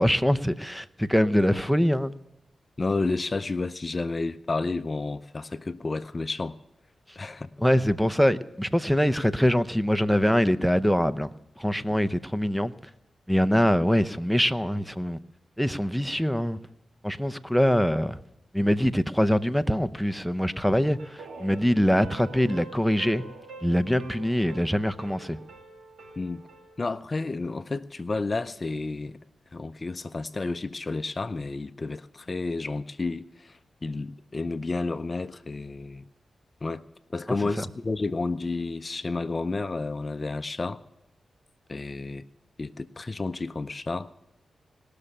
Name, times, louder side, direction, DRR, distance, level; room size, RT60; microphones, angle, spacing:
voice 1, 0.0-2.1 7.6-11.3 11.6-12.7 13.3-15.2 15.6-16.6 17.0-18.2 18.5-23.2 23.6-25.4, equal, ahead, 0.7 m, -23 dB
voice 2, 2.8-6.5 7.2-7.5 26.2-26.4 26.8-29.2 29.5-36.0 36.6-36.9 37.1-40.8 41.7-42.2 42.6-44.1, left 3 dB, 40° left, 0.6 m, -31 dB
sound 1, 20.7-26.8, right 3 dB, 80° right, 2.3 m, -46 dB
20.0 x 6.7 x 10.0 m
cardioid pair, 50°, 0 cm